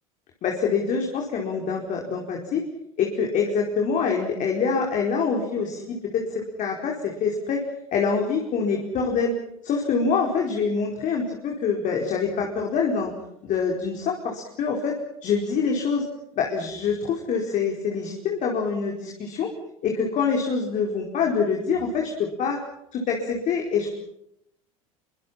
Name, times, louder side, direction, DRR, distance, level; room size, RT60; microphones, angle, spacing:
voice 1, 0.4-2.6 3.0-6.2 6.6-7.6 7.9-9.3 9.6-13.1 13.4-15.0 15.2-16.0 16.4-19.5 19.8-22.6 22.9-23.9, left 5 dB, 45° left, 0 dB, 4.7 m, -25 dB
28.5 x 24.5 x 5.9 m, 0.79 s
figure-of-eight pair, 75°, 18 cm